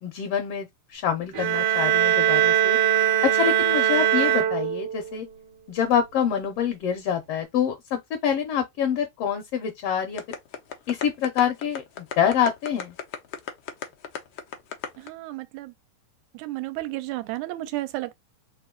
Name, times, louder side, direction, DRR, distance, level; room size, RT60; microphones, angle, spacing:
voice 1, 0.0-2.8 3.2-5.3 5.7-10.2 10.9-12.9, left 8 dB, 75° left, 1.5 m, -26 dB
sound 1, 1.3-5.2, right 11 dB, 70° right, 1.4 m, -21 dB
sound 2, 10.2-15.1, left 8 dB, 90° left, 1.1 m, -33 dB
voice 2, 15.0-15.7 16.3-18.1, right 17 dB, 85° right, 1.9 m, -32 dB
4.5 x 2.6 x 3.7 m
omnidirectional pair, 3.4 m